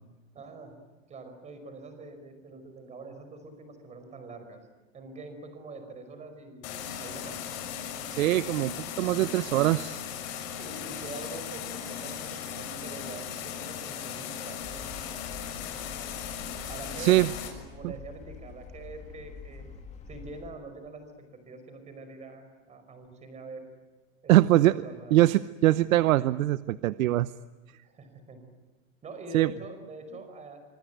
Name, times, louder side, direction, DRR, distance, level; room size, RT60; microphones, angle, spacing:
voice 1, 0.3-0.7 1.1-4.6 4.9-7.4 10.6-15.3 16.7-19.7 20.1-23.7 24.2-25.3 27.8-28.4 29.0-30.6, right 3 dB, 15° right, 8 dB, 5.2 m, -45 dB
sound 1, 6.6-17.5, left 8 dB, 55° left, 6.7 m, -37 dB
voice 2, 8.1-10.0 17.0-17.3 24.3-24.8 25.1-27.3 29.3-29.5, right 15 dB, 80° right, 15 dB, 0.9 m, -22 dB
sound 2, 14.6-20.5, left 5 dB, 15° left, 2.8 m, -46 dB
26.0 x 25.0 x 9.3 m, 1.2 s
supercardioid pair, 165°, 40 cm